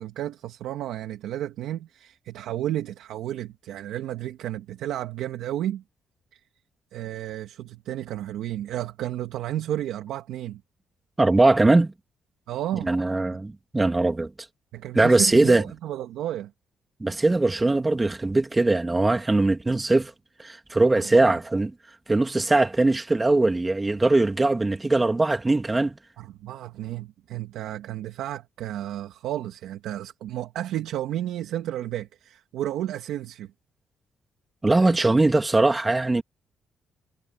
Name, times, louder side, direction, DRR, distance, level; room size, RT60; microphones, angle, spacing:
voice 1, 0.0-5.8 6.3-6.4 6.9-10.6 12.5-12.9 14.7-16.5 20.9-21.3 26.2-33.5 34.7-35.0, right 12 dB, 85° right, 1.7 m, -32 dB
voice 2, 11.2-11.9 12.8-14.3 14.9-15.6 17.0-20.1 20.4-21.7 22.1-26.0 34.6-36.2, right 2 dB, 20° right, 2.4 m, -21 dB
cardioid pair, 90°, 0 cm